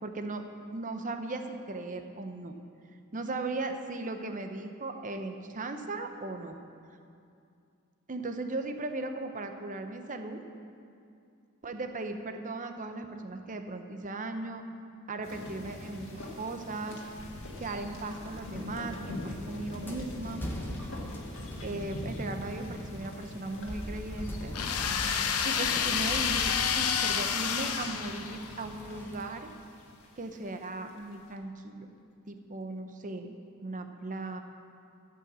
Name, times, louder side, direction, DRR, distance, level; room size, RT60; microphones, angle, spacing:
voice 1, 0.0-2.5 3.1-6.6 8.1-10.4 11.6-14.6 15.1-17.0 17.6-20.4 21.6-24.5 25.4-29.5 30.2-31.9 32.3-33.3 33.6-34.4, right 2 dB, 35° right, 6 dB, 0.8 m, -37 dB
sound 1, 15.2-30.7, left 1 dB, 60° left, 1.9 m, -41 dB
sound 2, 19.3-29.3, equal, 10° left, 1.1 m, -46 dB
sound 3, 24.5-28.6, left 7 dB, 80° left, 0.8 m, -29 dB
14.5 x 5.7 x 7.5 m, 2.5 s
head